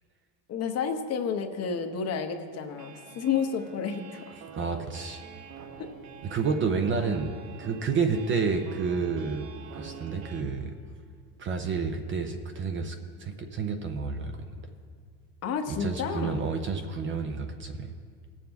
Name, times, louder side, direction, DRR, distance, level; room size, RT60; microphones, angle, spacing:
voice 1, 0.5-4.4 7.0-7.3 15.4-16.5, left 6 dB, 35° left, 5 dB, 0.9 m, -31 dB
sound 1, 2.7-10.4, right 6 dB, 75° right, 1.2 m, -47 dB
voice 2, 4.5-5.2 6.2-9.5 9.7-10.8 11.4-14.5 15.7-17.9, right 5 dB, 30° right, 6 dB, 0.6 m, -30 dB
18.0 x 7.3 x 3.5 m, 2.1 s
cardioid pair, 145°, 41 cm